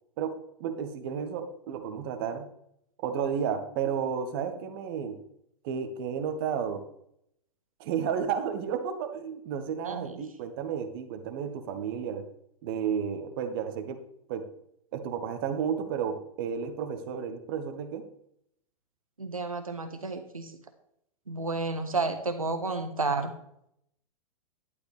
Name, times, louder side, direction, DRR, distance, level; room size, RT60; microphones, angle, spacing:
voice 1, 0.2-2.5 3.0-5.2 5.6-6.8 7.8-12.2 12.6-14.0 14.3-14.4 14.9-18.0, right 7 dB, 40° right, 8 dB, 1.6 m, -32 dB
voice 2, 9.8-10.2 19.2-20.6 21.3-23.3, right 3 dB, 80° right, 8 dB, 1.3 m, -31 dB
12.0 x 11.5 x 3.5 m, 0.74 s
figure-of-eight pair, 105°, 18 cm